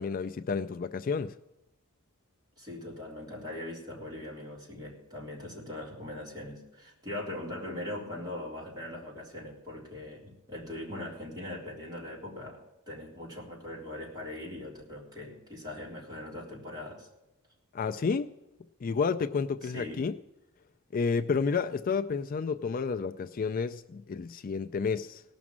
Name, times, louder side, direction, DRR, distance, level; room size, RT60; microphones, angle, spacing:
voice 1, 0.0-1.3 17.7-18.3 18.8-20.1 20.9-25.2, left 5 dB, 40° left, 0.4 m, -30 dB
voice 2, 2.6-17.1 19.6-20.1, left 1 dB, 20° right, 3.6 m, -41 dB
18.0 x 6.2 x 7.3 m
head